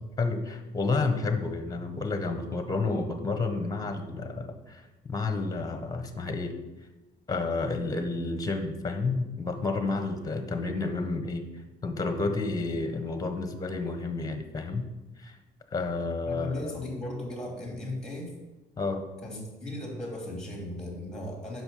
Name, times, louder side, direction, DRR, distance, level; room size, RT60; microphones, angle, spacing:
voice 1, 0.2-6.6 7.3-11.5 11.8-14.9 15.2-15.3 15.7-16.8 18.8-19.0, left 3 dB, 20° left, 7 dB, 1.2 m, -30 dB
voice 2, 16.2-18.3 19.2-21.6, left 1 dB, 5° left, -1 dB, 2.8 m, -36 dB
8.0 x 6.0 x 5.6 m, 1.1 s
cardioid pair, 110°, 17 cm